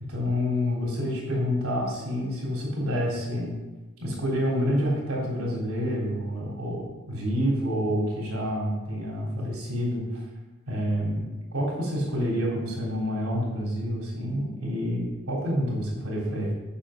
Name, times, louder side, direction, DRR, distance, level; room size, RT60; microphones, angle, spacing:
voice 1, 0.1-3.5 4.0-10.2 10.7-11.2 11.5-16.5, equal, 80° right, -4 dB, 3.5 m, -28 dB
8.9 x 6.8 x 5.1 m, 1.1 s
head